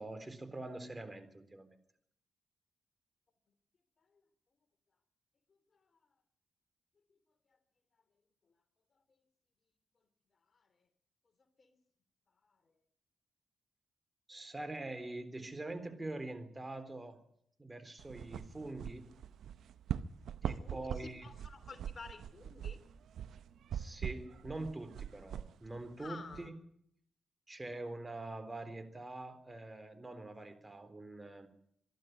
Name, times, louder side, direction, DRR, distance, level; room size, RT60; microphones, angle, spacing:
voice 1, 0.0-1.8 14.3-17.2 17.6-19.1 20.4-21.3 23.7-26.5 27.5-31.5, right 2 dB, 20° right, 10 dB, 3.7 m, -44 dB
voice 2, 10.5-10.9 11.6-11.8 12.4-12.7 20.4-22.8 26.0-26.5, left 4 dB, 50° left, 10 dB, 2.9 m, -52 dB
sound 1, 18.0-26.5, right 9 dB, 75° right, 0.8 m, -43 dB
24.0 x 12.0 x 9.5 m, 0.70 s
supercardioid pair, 45°, 0 cm